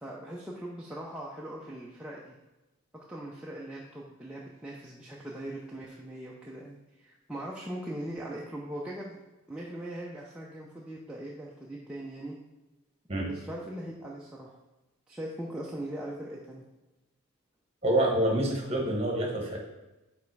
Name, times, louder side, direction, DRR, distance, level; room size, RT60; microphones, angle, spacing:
voice 1, 0.0-2.4 2.9-9.2 9.5-12.4 13.3-14.6 15.1-16.7, right 1 dB, 5° right, -5 dB, 0.5 m, -40 dB
voice 2, 17.8-19.6, right 1 dB, 25° right, -1 dB, 1.2 m, -27 dB
5.3 x 4.1 x 4.7 m, 1.0 s
head